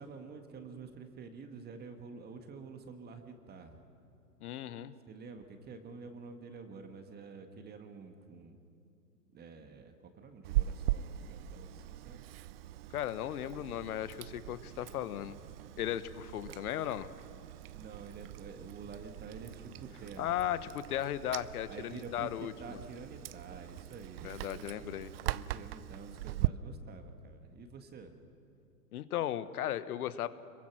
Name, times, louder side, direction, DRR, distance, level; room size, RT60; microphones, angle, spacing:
voice 1, 0.0-3.8 5.1-8.6 9.3-12.2 17.7-20.4 21.7-24.9 25.3-28.1, right 4 dB, 20° right, 6 dB, 1.8 m, -48 dB
voice 2, 4.4-4.9 12.9-15.4 15.8-17.1 20.2-22.8 24.2-25.1 28.9-30.3, left 11 dB, 65° left, 14 dB, 1.3 m, -36 dB
Chewing mastication, 10.4-26.5, right 15 dB, 40° right, 0.5 m, -40 dB
26.5 x 23.0 x 6.2 m, 2.7 s
hypercardioid pair, 130°, 49 cm